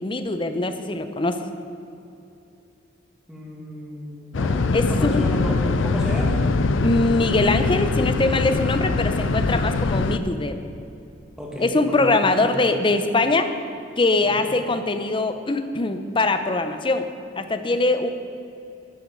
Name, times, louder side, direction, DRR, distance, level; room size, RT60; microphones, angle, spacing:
voice 1, 0.0-1.4 4.7-5.2 6.8-10.6 11.6-13.5 14.0-17.1 17.3-18.1, left 2 dB, 25° left, 8 dB, 0.7 m, -22 dB
voice 2, 3.3-6.4 11.4-12.5 14.4-14.5, equal, 5° right, -4 dB, 2.3 m, -32 dB
sound 1, 4.3-10.2, left 3 dB, 85° left, 0.5 m, -22 dB
11.5 x 6.5 x 8.4 m, 2.7 s
head